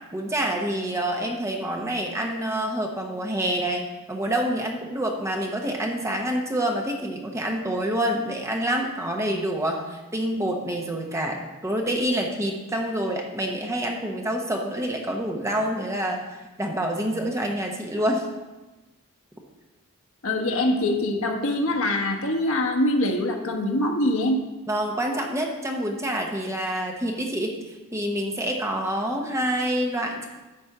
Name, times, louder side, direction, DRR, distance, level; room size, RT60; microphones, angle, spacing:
voice 1, 0.1-16.3 16.6-18.3 24.7-30.3, right 1 dB, 15° right, 1 dB, 1.0 m, -27 dB
voice 2, 20.2-24.4, left 1 dB, 65° left, 3 dB, 1.4 m, -24 dB
10.5 x 4.3 x 7.7 m, 1.1 s
head